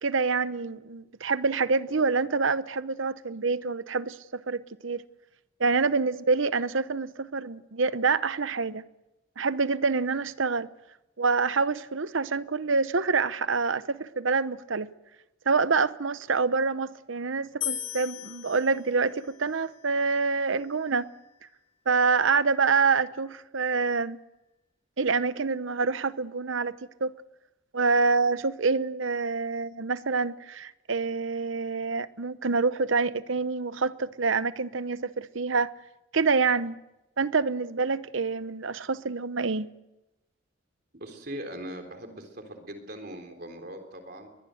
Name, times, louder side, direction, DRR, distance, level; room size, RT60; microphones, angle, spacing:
voice 1, 0.0-5.0 5.6-8.8 9.4-10.7 11.2-14.9 15.5-21.1 21.9-24.2 25.0-26.8 27.0-27.1 27.7-35.7 36.1-36.7 37.2-39.7, right 4 dB, 70° right, 0.8 m, -26 dB
sound 1, 17.6-20.8, left 10 dB, 85° left, 2.0 m, -39 dB
voice 2, 40.9-44.3, right 1 dB, 45° right, 3.8 m, -40 dB
22.5 x 20.0 x 7.8 m
head